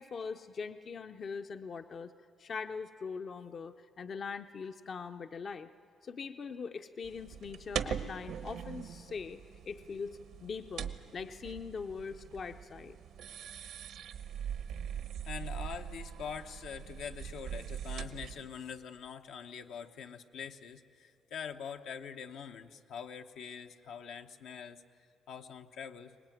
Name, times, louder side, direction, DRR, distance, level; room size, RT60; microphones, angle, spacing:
voice 1, 0.0-2.1 2.4-5.7 6.0-13.0, left 5 dB, 50° left, 8 dB, 0.6 m, -42 dB
sound 1, 7.0-18.5, right 8 dB, 80° right, 1.0 m, -42 dB
voice 2, 15.3-24.8 25.3-26.2, left 7 dB, 80° left, 5 dB, 0.9 m, -44 dB
24.0 x 19.5 x 9.2 m, 2.5 s
cardioid pair, 90°, 0 cm